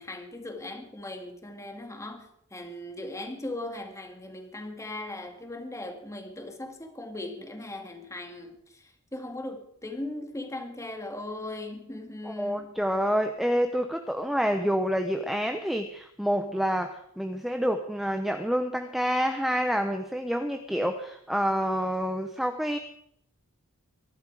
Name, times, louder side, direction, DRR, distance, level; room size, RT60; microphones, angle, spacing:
voice 1, 0.0-12.8, left 1 dB, 15° left, 2.1 m, -38 dB
voice 2, 12.2-22.8, equal, ahead, 0.8 m, -28 dB
22.5 x 11.5 x 4.9 m
head